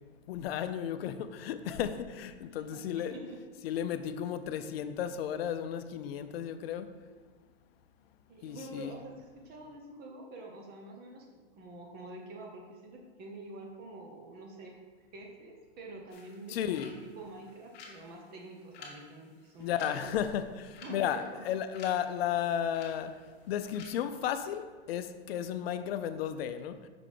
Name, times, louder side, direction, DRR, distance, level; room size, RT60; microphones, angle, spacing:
voice 1, 0.3-3.1 3.6-6.9 8.4-9.0 16.5-16.9 19.6-23.1 23.5-26.8, left 9 dB, 70° left, 0.5 m, -34 dB
voice 2, 2.5-3.4 8.3-20.1 20.8-21.5, right 2 dB, 30° right, 1.0 m, -47 dB
Ticking Clock, 16.1-23.9, left 4 dB, 30° left, 1.3 m, -54 dB
5.8 x 3.8 x 4.9 m
supercardioid pair, 140°, 32 cm